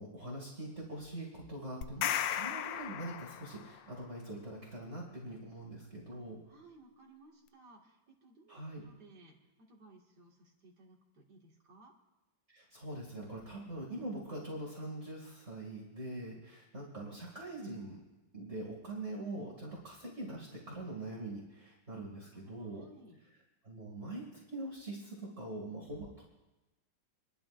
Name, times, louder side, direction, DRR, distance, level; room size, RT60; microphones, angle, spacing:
voice 1, 0.0-6.4 8.5-8.8 12.5-18.0 18.3-22.9 23.6-26.2, right 1 dB, 35° right, -4 dB, 2.8 m, -43 dB
sound 1, 1.8-3.8, left 10 dB, 85° left, 1.3 m, -35 dB
voice 2, 6.1-11.9 22.4-23.2, right 2 dB, 65° right, -1 dB, 2.7 m, -60 dB
27.5 x 11.5 x 2.6 m, 1.0 s
omnidirectional pair, 1.9 m